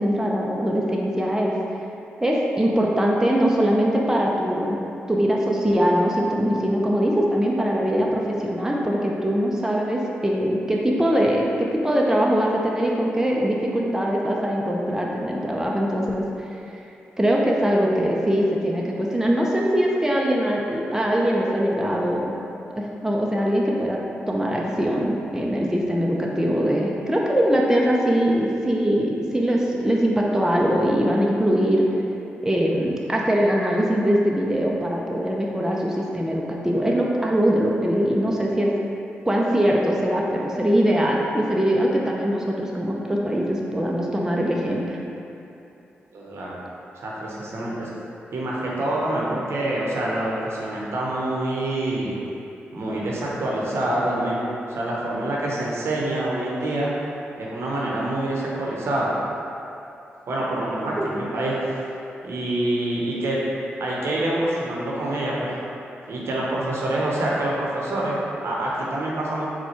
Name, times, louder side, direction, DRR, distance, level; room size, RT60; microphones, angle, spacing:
voice 1, 0.0-1.6 2.2-4.8 5.1-16.3 17.2-22.4 22.7-24.0 24.3-31.9 32.4-38.7 39.3-45.0 61.0-61.1, equal, 10° right, -2 dB, 0.6 m, -22 dB
voice 2, 46.1-46.5 47.0-47.9 48.3-52.2 52.7-54.4 54.7-56.9 57.4-59.1 60.3-61.8 62.2-63.4 63.8-65.5 66.1-69.5, right 1 dB, 70° right, -5 dB, 0.8 m, -26 dB
4.2 x 2.3 x 4.3 m, 2.8 s
supercardioid pair, 40°, 5 cm